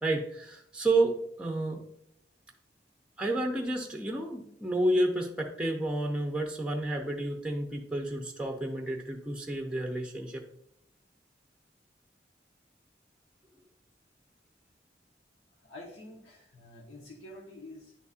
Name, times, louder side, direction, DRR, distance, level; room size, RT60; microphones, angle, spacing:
voice 1, 0.0-1.8 3.2-10.4, right 2 dB, 5° right, 2 dB, 0.6 m, -30 dB
voice 2, 15.6-17.9, left 1 dB, 90° left, -2 dB, 1.0 m, -48 dB
10.5 x 4.1 x 2.4 m, 0.73 s
head